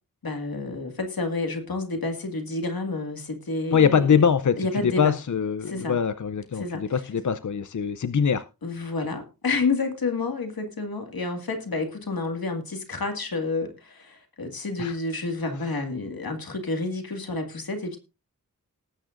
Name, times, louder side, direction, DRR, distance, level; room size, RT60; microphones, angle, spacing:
voice 1, 0.2-4.2 4.6-5.1 5.7-6.0 6.6-6.9 8.6-18.0, left 3 dB, 85° left, 2.0 m, -29 dB
voice 2, 3.7-8.5 14.8-15.0, left 7 dB, 55° left, 0.6 m, -23 dB
19.0 x 9.0 x 2.5 m
wide cardioid pair, 70°, 35 cm